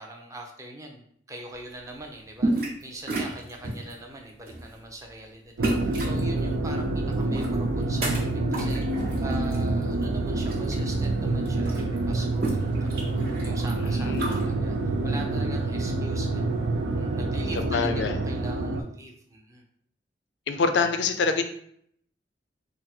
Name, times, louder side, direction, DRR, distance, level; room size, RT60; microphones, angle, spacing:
voice 1, 0.0-19.6, right 2 dB, 20° right, 1 dB, 0.5 m, -42 dB
sound 1, 2.4-2.8 3.1-3.9 4.4-4.7 5.6-6.2 7.1-8.2 8.5-9.6 10.0-10.7 11.0-11.1 11.3-14.4, right 2 dB, 60° right, 1.1 m, -31 dB
sound 2, 5.6-18.8, right 2 dB, 90° right, 0.4 m, -27 dB
sound 3, 6.3-17.3, right 2 dB, 35° right, 0.9 m, -45 dB
voice 2, 13.8-14.4 17.6-18.2 20.5-21.4, left 4 dB, 75° left, 7 dB, 0.4 m, -26 dB
3.7 x 2.0 x 4.3 m, 0.66 s
head